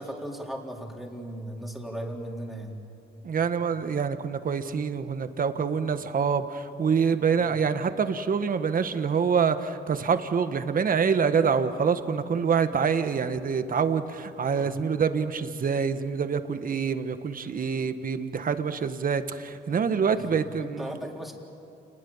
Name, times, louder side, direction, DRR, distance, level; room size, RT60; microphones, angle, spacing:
voice 1, 0.0-2.8 7.3-7.5 14.6-14.7 20.1-20.2 20.6-21.3, right 1 dB, ahead, -1 dB, 4.0 m, -37 dB
voice 2, 3.2-21.0, right 6 dB, 45° right, 10 dB, 1.4 m, -26 dB
29.0 x 20.5 x 7.3 m, 2.6 s
cardioid pair, 90°, 20 cm